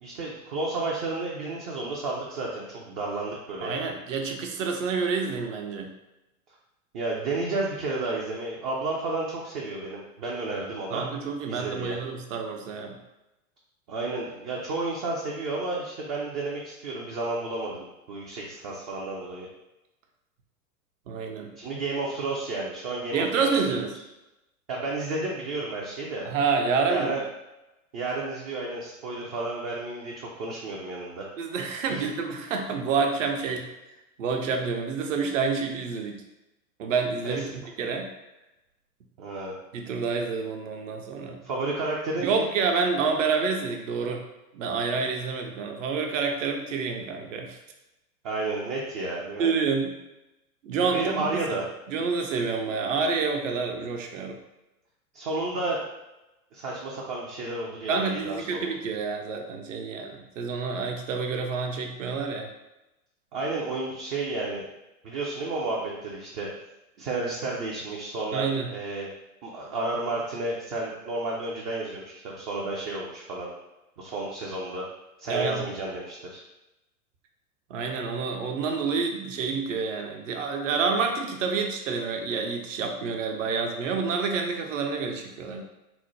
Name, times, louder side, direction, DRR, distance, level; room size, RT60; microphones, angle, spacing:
voice 1, 0.0-3.9 6.9-11.0 11.5-12.0 13.9-19.5 21.6-23.5 24.7-26.3 26.9-27.2 27.9-31.2 31.9-32.1 37.2-37.4 39.2-39.5 41.4-42.5 48.2-49.5 50.9-51.6 55.1-55.8 56.5-58.4 63.3-64.7 65.0-66.5 67.0-69.1 69.4-73.5 74.0-74.8 75.2-76.4, right 2 dB, 25° right, -3 dB, 0.4 m, -31 dB
voice 2, 3.6-5.9 10.9-13.0 21.1-21.5 23.1-23.9 26.2-27.1 31.4-33.7 34.2-36.2 36.8-37.4 37.8-38.1 39.7-41.4 42.2-44.2 44.5-47.6 49.4-50.0 50.6-51.4 51.9-54.4 57.9-62.5 68.3-68.7 75.3-75.6 77.7-85.6, right 5 dB, 55° right, 3 dB, 0.7 m, -28 dB
4.0 x 2.0 x 3.1 m, 0.96 s
figure-of-eight pair, 95°, 46 cm